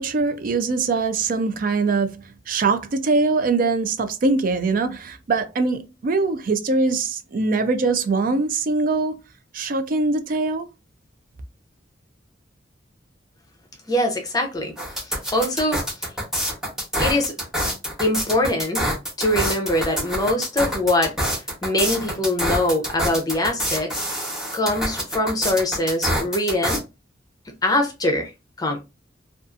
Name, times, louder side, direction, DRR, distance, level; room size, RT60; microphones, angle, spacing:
voice 1, 0.0-2.2 2.5-9.2 9.5-10.7, right 3 dB, 45° right, 0.4 m, -22 dB
voice 2, 13.9-14.7 15.0-15.8 17.0-17.3 18.0-18.9 19.2-23.9 24.5-26.8 27.6-28.3 28.6-28.8, left 1 dB, 20° left, 0.6 m, -23 dB
sound 1, 14.8-26.8, equal, 5° right, 1.0 m, -26 dB
2.5 x 2.4 x 2.4 m
head